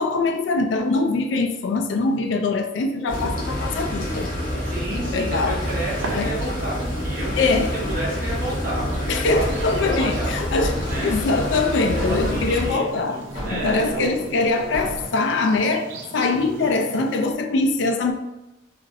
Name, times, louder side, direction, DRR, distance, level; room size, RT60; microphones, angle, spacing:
voice 1, 0.0-4.3 5.0-5.6 6.1-6.3 7.4-7.7 9.1-10.7 11.0-18.1, left 3 dB, 70° left, 5 dB, 0.3 m, -23 dB
sound 1, 3.1-12.7, left 1 dB, 45° left, 0.7 m, -27 dB
voice 2, 4.6-10.3 10.9-11.2 11.9-13.9 16.3-16.7, right 1 dB, 45° right, -5 dB, 1.0 m, -31 dB
sound 2, 5.6-17.3, right 3 dB, 80° right, 0.4 m, -38 dB
sound 3, 9.3-15.1, equal, 30° right, 1.3 m, -36 dB
3.0 x 2.5 x 2.6 m, 0.95 s
head